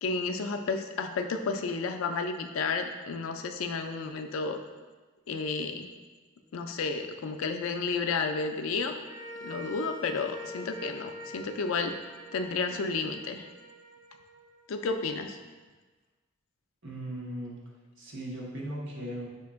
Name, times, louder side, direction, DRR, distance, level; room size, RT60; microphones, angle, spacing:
voice 1, 0.0-4.6 5.3-5.9 6.5-8.9 9.4-11.9 12.3-13.5 14.7-15.4, left 4 dB, 90° left, 6 dB, 0.4 m, -31 dB
sound 1, 9.0-15.4, left 1 dB, 30° right, 1.4 m, -45 dB
voice 2, 16.8-17.6 18.0-19.3, right 1 dB, 65° right, -4 dB, 1.0 m, -37 dB
5.0 x 2.8 x 3.5 m, 1.3 s
head